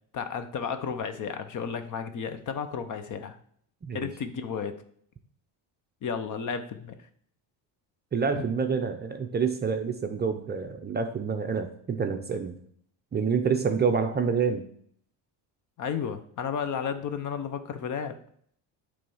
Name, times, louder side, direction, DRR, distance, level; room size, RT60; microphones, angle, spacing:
voice 1, 0.1-3.4 3.9-4.8 6.0-7.0 8.3-8.5 15.8-18.2, left 6 dB, 40° left, 10 dB, 0.8 m, -33 dB
voice 2, 8.1-12.6 13.1-14.6, right 6 dB, 25° right, 5 dB, 0.5 m, -27 dB
8.7 x 3.4 x 5.5 m, 0.63 s
cardioid pair, 130°, 45 cm